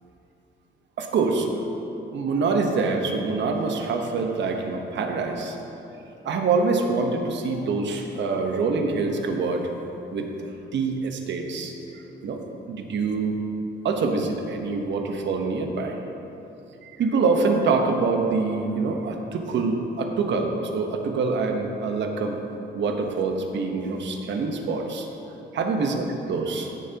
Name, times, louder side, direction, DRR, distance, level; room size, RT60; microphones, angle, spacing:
voice 1, 1.0-1.5 2.1-5.6 6.2-9.7 10.1-10.3 10.7-12.4 12.7-13.4 13.8-16.0 16.8-22.4 22.7-25.1 25.5-26.0 26.3-26.7, right 4 dB, 65° right, 4 dB, 1.1 m, -25 dB
16.0 x 6.8 x 2.9 m, 2.9 s
cardioid pair, 90°, 20 cm